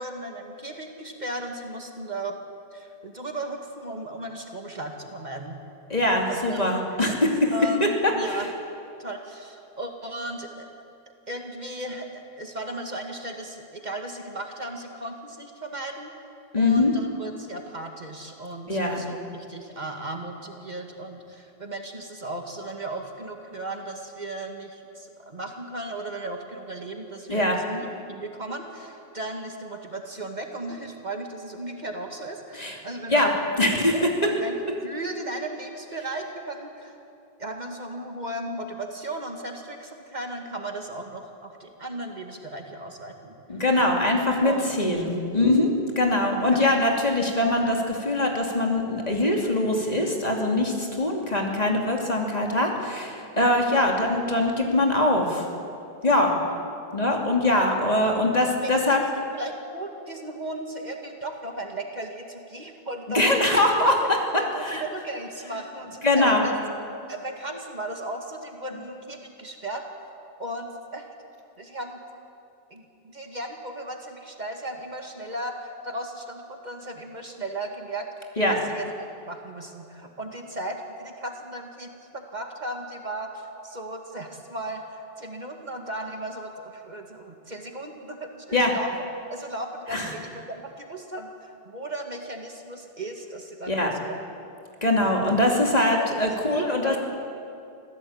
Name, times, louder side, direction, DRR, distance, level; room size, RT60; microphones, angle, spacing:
voice 1, 0.0-2.4 2.7-5.6 6.3-6.8 7.5-8.5 9.0-10.7 11.3-16.1 16.6-33.9 34.2-34.5 34.8-37.0 37.4-43.3 44.4-45.2 46.4-46.7 56.3-56.6 58.4-59.1 59.3-63.5 64.0-66.5 67.1-69.8 70.4-71.1 71.6-72.0 72.7-78.1 78.5-88.9 89.3-94.1 96.0-97.0, right 1 dB, 45° right, 3 dB, 2.1 m, -36 dB
voice 2, 5.9-7.5 7.8-7.9 8.3-8.4 16.5-16.9 18.7-19.0 27.3-27.6 32.6-32.8 33.1-33.3 33.6-34.1 43.5-55.5 56.0-56.4 56.9-59.0 63.1-64.0 64.6-64.8 66.0-66.4 78.4-78.6 88.5-88.7 89.9-90.1 93.7-93.9 94.8-96.9, left 1 dB, 40° left, 1 dB, 2.8 m, -22 dB
25.5 x 16.0 x 8.7 m, 2.6 s
omnidirectional pair, 1.0 m